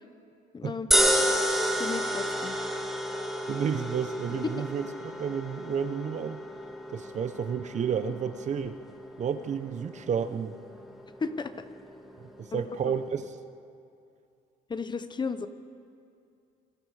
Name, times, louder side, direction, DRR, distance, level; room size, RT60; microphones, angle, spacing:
voice 1, 0.5-1.0 1.8-2.6 4.4-4.7 11.2-11.5 12.5-12.9 14.7-15.5, left 4 dB, 25° left, 11 dB, 1.0 m, -34 dB
sound 1, 0.9-13.2, equal, ahead, 2.2 m, -32 dB
voice 2, 3.5-6.4 6.9-8.8 9.2-10.6 12.4-13.2, right 7 dB, 45° right, 10 dB, 1.0 m, -31 dB
26.0 x 21.5 x 5.0 m, 2.5 s
cardioid pair, 110°, 17 cm